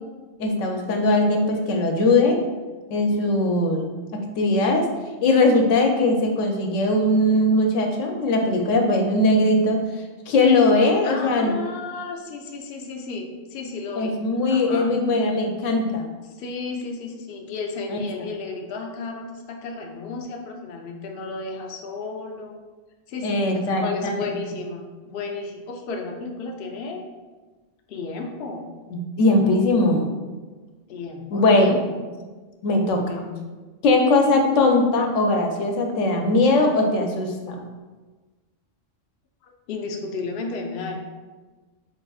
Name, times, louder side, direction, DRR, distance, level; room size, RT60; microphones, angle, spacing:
voice 1, 0.4-2.4 2.9-3.9 4.1-4.9 5.2-9.8 10.3-11.5 14.0-16.1 17.9-18.0 23.2-24.1 28.9-30.1 31.3-31.7 32.6-33.0 33.8-37.6, left 2 dB, 85° left, 3 dB, 1.0 m, -20 dB
voice 2, 11.0-14.2 14.5-14.9 16.2-22.5 23.1-27.0 27.9-28.7 30.9-32.0 33.0-33.4 39.4-41.0, left 4 dB, 60° left, 2 dB, 0.7 m, -33 dB
4.0 x 3.7 x 2.3 m, 1.3 s
omnidirectional pair, 1.3 m